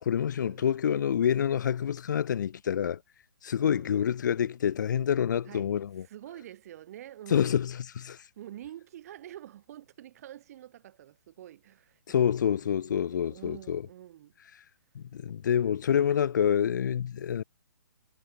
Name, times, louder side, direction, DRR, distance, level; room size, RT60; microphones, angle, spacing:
voice 1, 0.0-3.0 3.4-6.0 7.3-8.2 12.1-13.8 14.9-17.4, left 8 dB, 60° left, 0.7 m, -27 dB
voice 2, 3.6-3.9 5.5-5.7 6.0-7.6 8.4-14.3, right 12 dB, 45° right, 2.7 m, -47 dB
hypercardioid pair, 140°, 11 cm